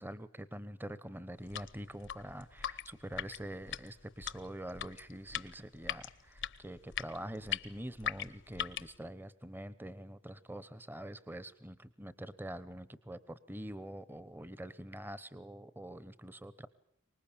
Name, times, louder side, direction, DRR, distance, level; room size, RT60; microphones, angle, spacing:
voice 1, 0.0-16.7, right 1 dB, 10° right, 16 dB, 1.0 m, -45 dB
sound 1, 1.4-9.0, left 10 dB, 60° left, 1.0 m, -41 dB
25.0 x 20.5 x 8.7 m, 0.69 s
head